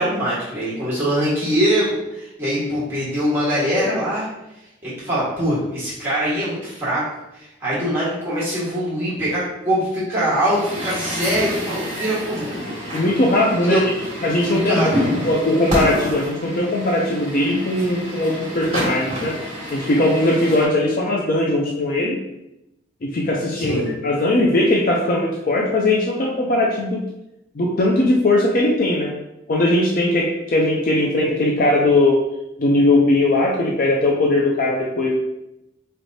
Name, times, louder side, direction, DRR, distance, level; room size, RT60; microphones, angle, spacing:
voice 1, 0.0-4.3 4.8-7.1 7.3-12.5 13.6-13.8 14.4-15.1 23.6-23.9, equal, 10° right, -9 dB, 1.3 m, -22 dB
Truck, 10.4-20.6, equal, 30° right, 1.3 m, -28 dB
voice 2, 12.9-13.8 14.2-14.9 15.2-19.4 19.7-22.2 23.0-27.0 27.6-29.1 29.5-32.2 32.6-35.2, left 1 dB, 45° left, -1 dB, 0.4 m, -19 dB
4.2 x 3.2 x 2.6 m, 0.89 s
head